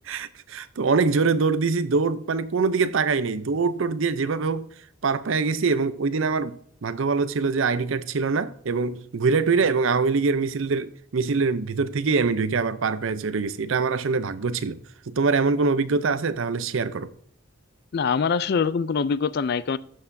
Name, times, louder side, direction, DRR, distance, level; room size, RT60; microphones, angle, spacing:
voice 1, 0.1-4.7 5.0-14.8 15.1-17.1, right 4 dB, 70° right, 0.5 m, -24 dB
voice 2, 17.9-19.8, left 5 dB, 50° left, 0.3 m, -24 dB
12.5 x 6.5 x 2.6 m
head